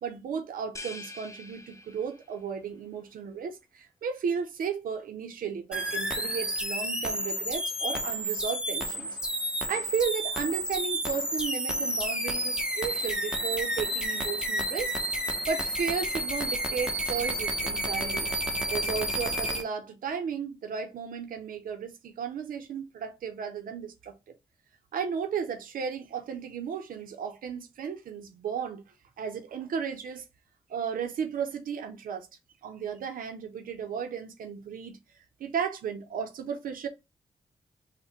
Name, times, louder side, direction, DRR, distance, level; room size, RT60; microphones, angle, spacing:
voice 1, 0.0-9.2 9.7-14.9 15.5-18.3 18.7-24.4 24.9-28.8 29.2-30.3 30.7-32.3 32.6-35.0 35.4-36.9, right 7 dB, 80° right, 0.6 m, -34 dB
sound 1, 0.8-2.5, left 2 dB, 20° left, 0.6 m, -44 dB
sound 2, 5.7-19.6, right 1 dB, 5° right, 0.9 m, -30 dB
3.2 x 2.1 x 4.2 m
supercardioid pair, 40°, 14 cm